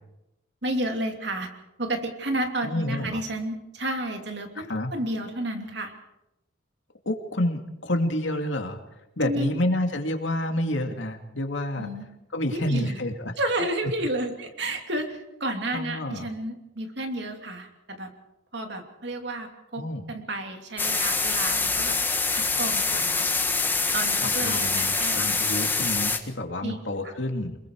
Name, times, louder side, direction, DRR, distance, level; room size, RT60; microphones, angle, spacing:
voice 1, 0.6-1.5 1.8-5.9 9.2-9.6 11.8-12.0 12.5-13.0 13.4-18.1 18.5-19.8 20.1-22.0 22.3-23.3 23.9-25.2 26.6-26.8, right 1 dB, 60° right, 4 dB, 2.9 m, -31 dB
voice 2, 2.6-3.2 4.6-4.9 7.1-8.8 9.2-11.9 12.3-13.3 15.7-16.3 19.8-20.0 24.2-27.6, left 1 dB, 70° left, 5 dB, 2.4 m, -29 dB
sound 1, 20.8-26.2, left 4 dB, 10° left, 1.4 m, -25 dB
27.5 x 21.5 x 4.8 m, 0.92 s
head